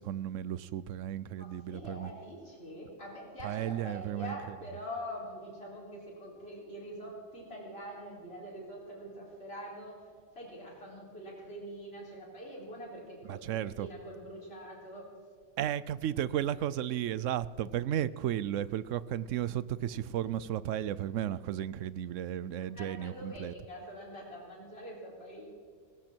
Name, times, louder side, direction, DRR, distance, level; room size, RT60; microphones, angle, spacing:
voice 1, 0.0-2.1 3.4-4.4 13.3-13.9 15.6-23.5, right 11 dB, 90° right, 18 dB, 1.0 m, -34 dB
voice 2, 1.4-10.0 10.3-15.1 22.6-25.5, equal, 55° left, -4 dB, 4.4 m, -44 dB
17.5 x 17.0 x 4.5 m, 2.1 s
omnidirectional pair, 1.3 m